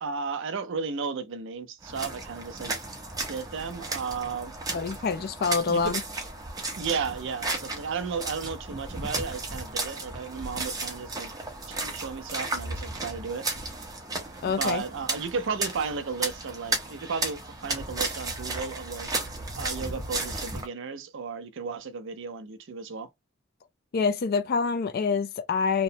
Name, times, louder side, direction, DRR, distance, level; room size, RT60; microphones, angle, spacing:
voice 1, 0.0-2.8 3.3-4.5 5.7-6.0 6.8-11.3 11.7-13.5 14.4-19.1 19.6-23.1, right 5 dB, 60° right, 0.5 m, -34 dB
sound 1, 1.8-20.7, right 2 dB, 15° right, 0.7 m, -34 dB
voice 2, 4.7-6.0 14.4-14.8 23.9-25.8, left 5 dB, 45° left, 0.4 m, -26 dB
2.9 x 2.0 x 2.7 m
head